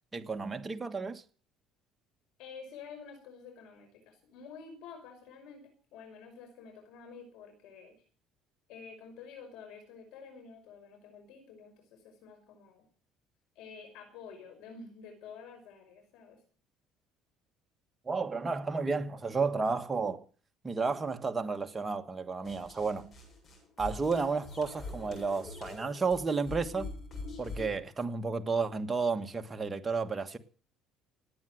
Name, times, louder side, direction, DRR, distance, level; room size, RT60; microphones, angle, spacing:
voice 1, 0.1-1.2 18.0-20.2 20.6-23.1 23.8-26.9 27.4-30.4, right 4 dB, 20° right, 1.4 m, -32 dB
voice 2, 2.4-7.9 8.7-12.8 13.6-16.4, left 5 dB, 75° left, 5.7 m, -49 dB
sound 1, 22.4-27.8, left 3 dB, 35° left, 7.4 m, -44 dB
18.0 x 9.1 x 7.7 m
cardioid pair, 125°, 0 cm